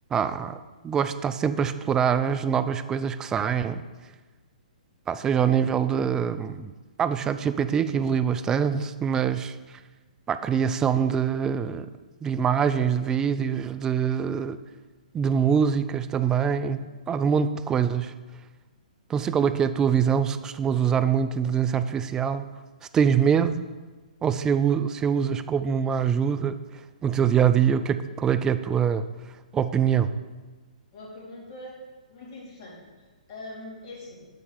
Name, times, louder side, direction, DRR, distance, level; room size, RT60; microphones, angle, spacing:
voice 1, 0.1-3.8 5.1-6.7 7.0-9.8 10.3-11.9 12.2-14.6 15.1-18.1 19.1-22.5 22.9-23.6 24.2-26.6 27.0-29.1 29.5-30.2, right 7 dB, 15° right, 12 dB, 0.4 m, -24 dB
voice 2, 27.9-28.2 30.9-31.8 32.1-34.3, left 2 dB, 40° left, -4 dB, 3.0 m, -43 dB
9.1 x 4.1 x 6.7 m, 1.3 s
figure-of-eight pair, 125°, 4 cm